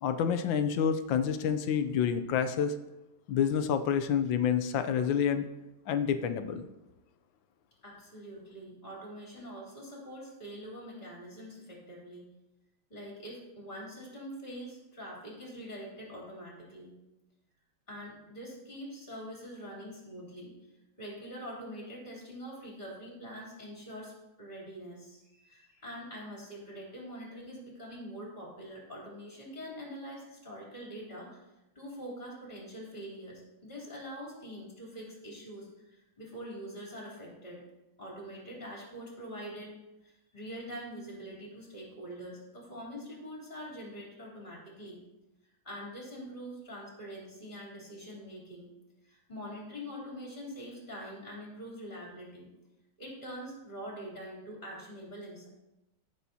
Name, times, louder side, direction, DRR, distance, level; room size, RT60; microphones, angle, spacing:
voice 1, 0.0-2.7 3.3-5.5 5.9-6.7, left 8 dB, 75° left, 10 dB, 1.3 m, -28 dB
voice 2, 7.8-12.3 12.9-17.0 17.9-20.5 21.0-31.4 31.8-37.6 38.0-39.7 40.0-45.0 45.6-48.7 49.0-52.5 53.0-55.5, equal, 25° left, -4 dB, 3.4 m, -44 dB
15.0 x 7.1 x 2.8 m, 0.95 s
omnidirectional pair, 2.3 m